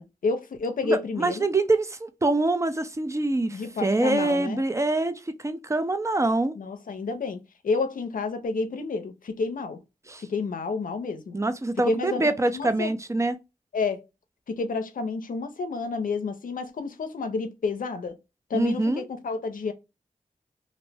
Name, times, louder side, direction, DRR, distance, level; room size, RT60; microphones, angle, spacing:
voice 1, 0.0-1.5 3.5-4.6 6.6-9.8 10.2-11.4 11.9-12.2 12.5-12.9 13.7-14.0 14.5-18.2 18.5-19.7, left 4 dB, 75° left, 0.5 m, -30 dB
voice 2, 0.8-6.6 10.1-10.2 11.3-13.4 18.5-19.0, right 2 dB, 20° right, 0.5 m, -25 dB
2.6 x 2.0 x 3.2 m
cardioid pair, 40°, 14 cm